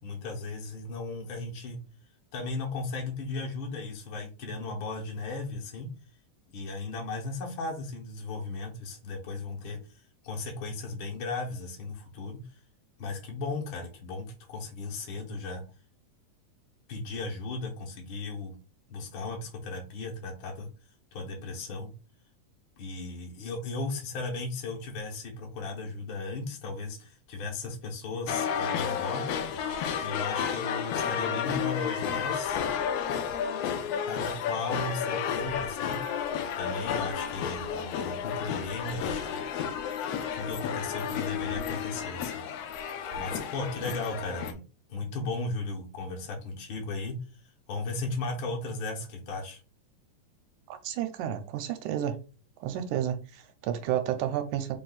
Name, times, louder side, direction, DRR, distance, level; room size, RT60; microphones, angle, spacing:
voice 1, 0.0-1.8 2.3-5.9 6.5-12.4 13.0-15.6 16.9-18.6 18.9-20.7 21.1-21.9 22.8-29.3 30.0-32.6 34.1-39.4 40.3-42.4 43.2-44.6 44.9-47.2 47.7-49.6, left 3 dB, 55° left, 0 dB, 1.6 m, -36 dB
sound 1, 28.3-44.5, left 7 dB, 80° left, 1.5 m, -32 dB
voice 2, 50.7-52.1 52.6-54.8, right 10 dB, 85° right, 8 dB, 2.1 m, -31 dB
4.7 x 2.6 x 4.0 m, 0.34 s
omnidirectional pair, 3.4 m